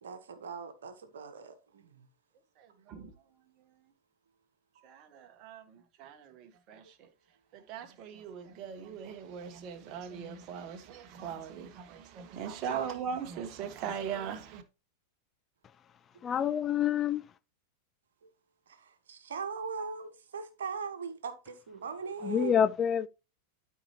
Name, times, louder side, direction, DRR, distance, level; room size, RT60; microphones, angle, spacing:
voice 1, 0.0-2.0 4.7-4.9 6.8-6.9 12.7-12.9 18.2-18.3 18.7-22.5, right 5 dB, 65° right, 1.3 m, -40 dB
voice 2, 2.6-3.1 4.8-7.1 7.5-14.6, right 7 dB, 40° right, 1.2 m, -40 dB
voice 3, 16.2-17.3 22.2-23.1, left 8 dB, 25° left, 0.3 m, -27 dB
12.0 x 4.6 x 2.9 m
figure-of-eight pair, 90°, 0 cm